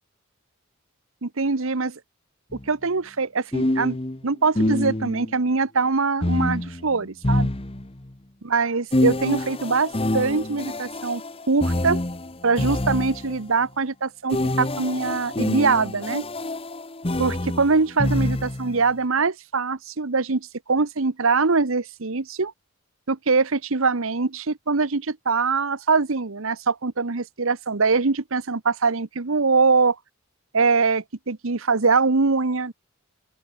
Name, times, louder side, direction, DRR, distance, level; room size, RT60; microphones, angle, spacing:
voice 1, 1.2-2.0 2.7-4.0 4.2-7.5 8.4-11.2 11.5-12.0 12.4-16.2 17.2-22.5 23.1-30.0 30.5-32.7, right 4 dB, 70° right, 1.0 m, -23 dB
sound 1, 2.5-2.7 3.5-5.3 6.2-8.1 8.9-13.4 14.3-18.8, left 1 dB, 25° left, 1.2 m, -26 dB
open air
head